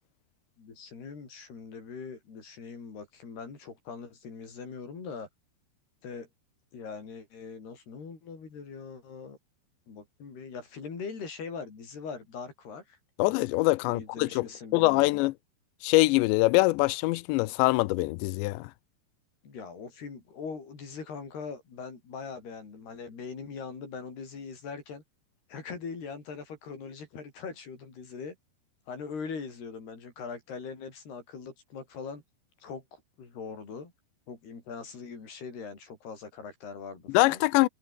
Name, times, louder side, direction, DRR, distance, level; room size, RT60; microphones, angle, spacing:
voice 1, 0.6-5.3 6.0-6.3 6.7-9.4 9.9-13.0 13.8-15.2 19.4-25.0 25.5-28.4 28.9-32.2 32.6-33.9 34.3-37.4, left 5 dB, 60° left, 8.3 m, -41 dB
voice 2, 13.2-14.5 14.7-15.3 15.8-18.7 37.1-37.7, left 21 dB, 85° left, 2.8 m, -24 dB
omnidirectional pair, 5.2 m